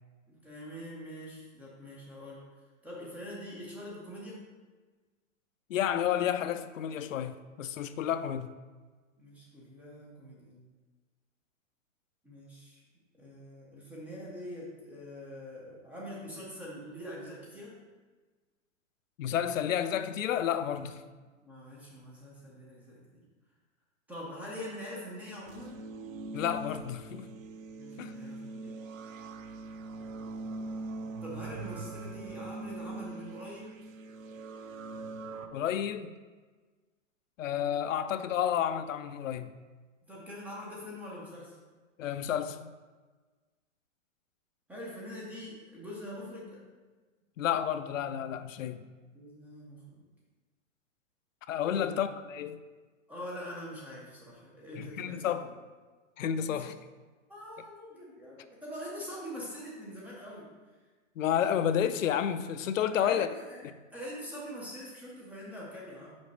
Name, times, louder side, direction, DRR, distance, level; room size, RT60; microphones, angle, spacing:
voice 1, 0.3-4.4 9.2-10.6 12.2-12.8 13.2-17.8 21.0-21.1 21.4-23.0 24.1-25.8 27.8-28.8 31.2-33.7 40.1-41.6 44.7-46.6 49.1-50.0 51.7-52.0 53.1-55.5 56.4-56.7 57.3-60.5 62.9-63.6 63.9-66.2, equal, 5° right, -5 dB, 0.4 m, -44 dB
voice 2, 5.7-8.5 19.2-21.0 26.3-27.3 28.0-28.1 35.5-36.1 37.4-39.5 42.0-42.7 47.4-48.9 51.5-52.6 54.8-55.5 56.2-56.7 61.2-63.3, left 9 dB, 80° left, 11 dB, 0.6 m, -31 dB
sound 1, 25.5-35.5, right 3 dB, 80° right, 0.7 m, -42 dB
5.3 x 3.9 x 5.2 m, 1.3 s
hypercardioid pair, 145°, 39 cm